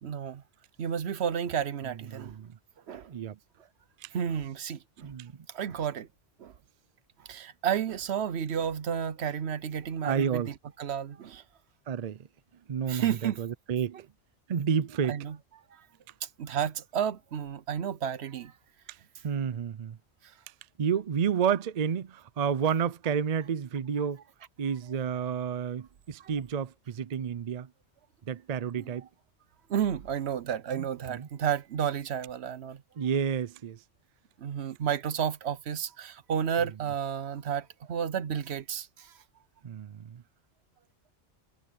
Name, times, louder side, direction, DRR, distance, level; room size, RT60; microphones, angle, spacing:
voice 1, 0.0-0.4 0.8-2.4 2.9-3.1 4.1-5.1 5.5-6.1 6.4-6.5 7.2-11.4 12.9-13.4 13.9-14.0 15.1-15.4 15.7-15.9 16.2-18.5 26.2-26.3 28.8-28.9 29.7-32.8 34.4-39.1, right 8 dB, 70° right, 1.0 m, -32 dB
voice 2, 2.1-2.6 3.1-3.4 4.0-4.1 5.0-5.3 10.0-10.5 11.9-12.2 12.7-14.0 14.5-15.2 19.2-20.0 20.8-24.2 24.6-27.7 28.3-29.1 30.7-31.3 33.0-33.8 39.6-40.2, right 7 dB, 45° right, 0.6 m, -30 dB
omnidirectional pair, 1.2 m